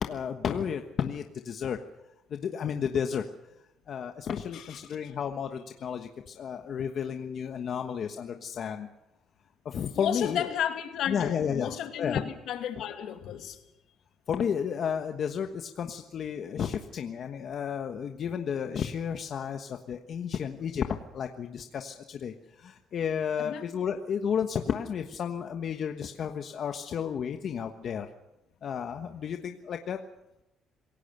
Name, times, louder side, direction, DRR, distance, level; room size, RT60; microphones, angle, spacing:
voice 1, 0.0-1.8 2.3-3.2 3.9-8.9 9.6-10.5 11.1-11.7 12.0-12.2 14.3-20.9 21.1-28.1 28.6-30.0, left 7 dB, 50° left, 5 dB, 1.3 m, -32 dB
voice 2, 9.9-13.6 23.4-23.6, left 10 dB, 70° left, 6 dB, 2.6 m, -33 dB
27.0 x 17.5 x 6.8 m, 0.91 s
cardioid pair, 120°, 0 cm